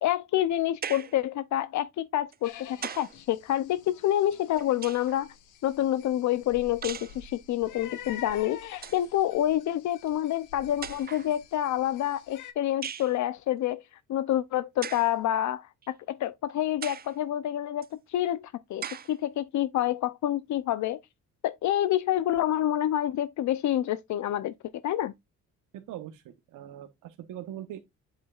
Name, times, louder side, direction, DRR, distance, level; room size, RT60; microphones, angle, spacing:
voice 1, 0.0-5.3 5.6-13.8 14.1-21.0 21.4-24.5 24.8-25.1, left 12 dB, 70° left, 0.6 m, -28 dB
sound 1, 0.8-1.2 2.3-3.2 4.3-5.2 6.8-7.2 8.3-8.4 8.7-9.1 10.1-10.2 10.8-11.3 12.8-13.1 14.8-15.1 15.8-15.9 16.8-17.2 17.8-17.9 18.8-19.1, right 7 dB, 30° right, 0.5 m, -39 dB
sound 2, 2.4-12.5, left 9 dB, 90° left, 1.3 m, -47 dB
voice 2, 25.7-27.8, right 11 dB, 85° right, 1.1 m, -41 dB
8.2 x 6.7 x 2.4 m
cardioid pair, 90°, 30 cm